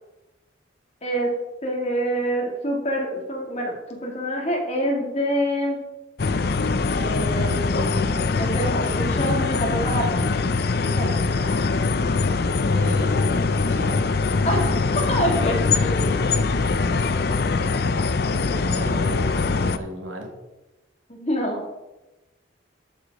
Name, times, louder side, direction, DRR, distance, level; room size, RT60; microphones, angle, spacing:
voice 1, 1.6-3.7 4.0-5.8 7.0-10.2 10.8-11.1 11.4-11.6 14.5-16.1 21.1-21.6, equal, 30° left, -1 dB, 2.3 m, -26 dB
sound 1, 6.2-19.8, left 4 dB, 50° left, 0.5 m, -22 dB
voice 2, 12.7-13.2 13.7-13.9 18.3-19.3 19.6-20.3, equal, 85° right, 1 dB, 2.1 m, -33 dB
13.5 x 4.9 x 4.7 m, 1.0 s
head